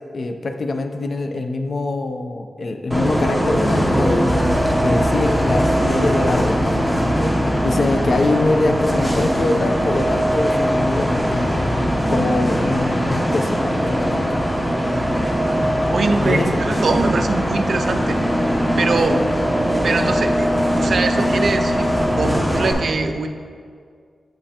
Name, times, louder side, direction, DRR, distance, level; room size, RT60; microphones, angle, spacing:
voice 1, 0.1-4.2 4.8-11.6 12.1-14.3 16.2-16.6 19.1-19.2, left 2 dB, 55° left, 5 dB, 0.4 m, -24 dB
Bus, 2.9-22.7, equal, 5° left, 0.7 m, -20 dB
voice 2, 15.9-18.2 18.8-19.2 19.8-23.3, right 4 dB, 65° right, 7 dB, 0.3 m, -23 dB
7.4 x 5.4 x 2.8 m, 2.1 s
wide cardioid pair, 125°, 0 cm